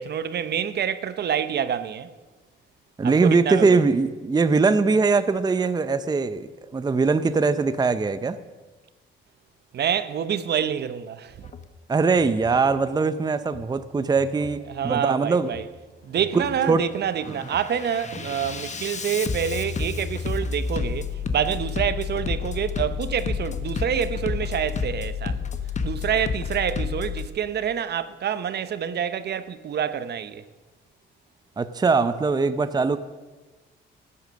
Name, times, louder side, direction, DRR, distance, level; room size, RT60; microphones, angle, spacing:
voice 1, 0.0-2.1 3.0-3.1 3.5-3.8 9.7-11.4 14.7-15.7 16.0-25.4 25.8-30.4, right 8 dB, 55° right, 0.8 m, -27 dB
voice 2, 3.0-8.4 11.9-15.5 16.3-16.4 16.7-16.8 17.3-17.4 31.6-33.0, right 4 dB, 20° right, 0.6 m, -21 dB
Bass drum, 11.4-11.7 12.1-12.6 13.4-13.7 14.1-14.6 15.4-15.7 16.1-16.6 17.1-27.3, left 5 dB, 35° left, 1.1 m, -30 dB
sound 1, 16.0-25.0, right 2 dB, 80° right, 2.6 m, -48 dB
13.5 x 9.7 x 6.3 m
cardioid pair, 90°, 20 cm